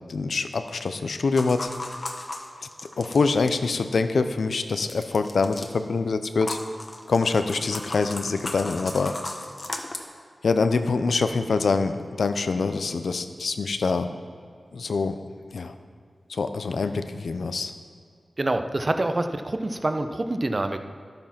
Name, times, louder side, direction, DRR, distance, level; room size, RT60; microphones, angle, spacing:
voice 1, 0.1-1.7 3.0-6.6 7.1-9.1 10.4-14.1 14.7-15.2 15.5-15.8 16.3-17.7, left 4 dB, 85° left, 9 dB, 0.7 m, -25 dB
sound 1, 1.4-3.6 4.9-5.7 6.4-10.0, left 2 dB, 45° left, 1.3 m, -36 dB
voice 2, 18.4-20.8, right 2 dB, 40° right, 7 dB, 0.8 m, -26 dB
11.5 x 8.9 x 5.9 m, 2.2 s
wide cardioid pair, 60°, 0 cm